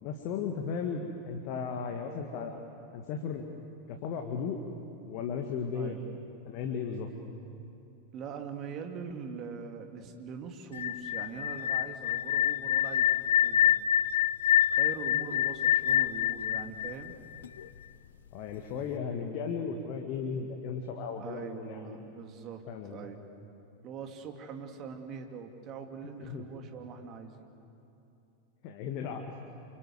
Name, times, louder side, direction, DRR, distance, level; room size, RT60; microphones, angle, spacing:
voice 1, 0.0-2.6 2.9-3.4 3.9-4.6 5.1-6.0 6.4-7.1 18.3-22.0 22.7-23.1 26.2-26.5 28.6-29.4, left 6 dB, 45° left, 4 dB, 1.9 m, -35 dB
voice 2, 8.1-13.7 14.7-17.1 21.2-22.6 22.9-23.2 23.8-27.5, right 6 dB, 35° right, 4 dB, 2.7 m, -42 dB
sound 1, 10.7-17.6, left 11 dB, 65° left, 0.5 m, -26 dB
28.5 x 25.0 x 7.9 m, 2.8 s
figure-of-eight pair, 90°, 0 cm